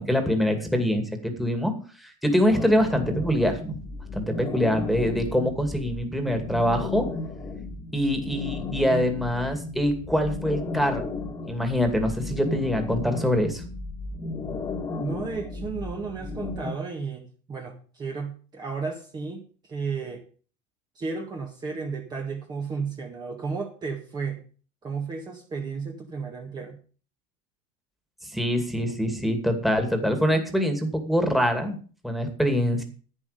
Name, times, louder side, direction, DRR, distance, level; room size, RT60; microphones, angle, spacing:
voice 1, 0.0-1.7 2.0-3.8 4.1-7.0 7.9-11.0 11.5-13.6 28.3-31.8 32.0-32.8, equal, ahead, 7 dB, 2.4 m, -24 dB
sound 1, 2.5-16.7, left 3 dB, 20° left, 2.0 m, -35 dB
voice 2, 15.0-20.2 21.0-24.4 24.8-26.8, right 4 dB, 20° right, 2 dB, 1.8 m, -33 dB
11.0 x 10.0 x 5.1 m, 0.39 s
supercardioid pair, 140°, 18 cm